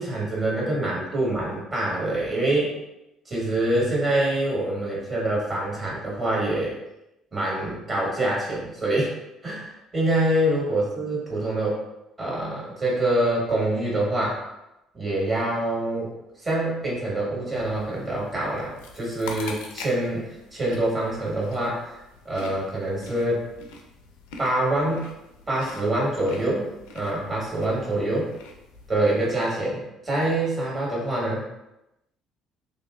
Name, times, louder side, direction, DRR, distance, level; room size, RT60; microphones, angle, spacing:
voice 1, 0.0-2.7 3.2-6.8 7.3-9.1 9.4-11.8 12.2-14.4 14.9-16.1 16.4-22.0 22.2-23.4 24.4-25.1 25.5-26.6 26.9-28.2 28.9-31.4, right 1 dB, 30° right, -5 dB, 1.5 m, -25 dB
sound 1, 17.5-28.9, left 3 dB, 70° left, 0.4 m, -44 dB
2.8 x 2.8 x 2.4 m, 0.91 s
figure-of-eight pair, 55°, 0 cm